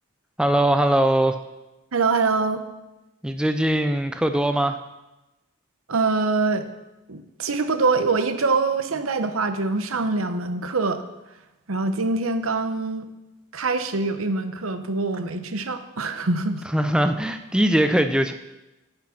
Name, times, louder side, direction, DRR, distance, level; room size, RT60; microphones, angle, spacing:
voice 1, 0.4-1.4 3.2-4.8 16.7-18.3, right 1 dB, 5° right, 8 dB, 0.4 m, -21 dB
voice 2, 1.9-2.7 5.9-6.7 7.1-11.0 11.7-13.1 13.5-16.6, right 3 dB, 85° right, 9 dB, 0.9 m, -24 dB
9.9 x 8.8 x 5.8 m, 1.0 s
head